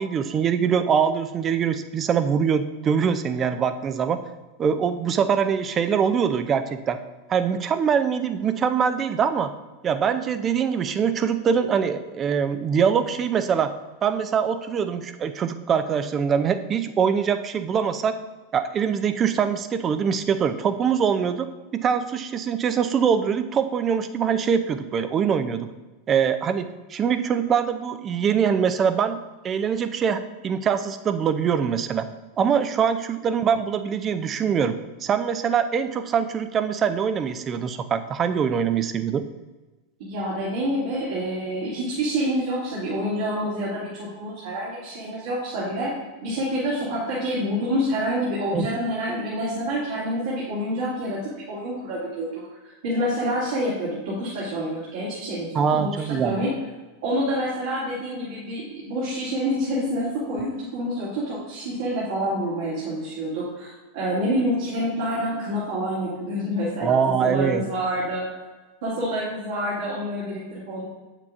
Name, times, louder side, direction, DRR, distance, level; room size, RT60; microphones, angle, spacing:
voice 1, 0.0-4.2 4.6-7.0 7.3-9.5 9.8-13.7 14.0-18.1 18.5-25.7 26.1-32.1 32.4-34.8 35.0-39.2 48.5-48.7 55.5-56.4 66.8-67.6, right 7 dB, 30° right, 11 dB, 0.5 m, -23 dB
voice 2, 40.0-45.9 46.2-51.2 51.5-56.5 57.0-68.3 68.8-70.8, equal, 65° right, -8 dB, 2.6 m, -27 dB
8.2 x 7.3 x 2.6 m, 1.2 s
hypercardioid pair, 90°, 0 cm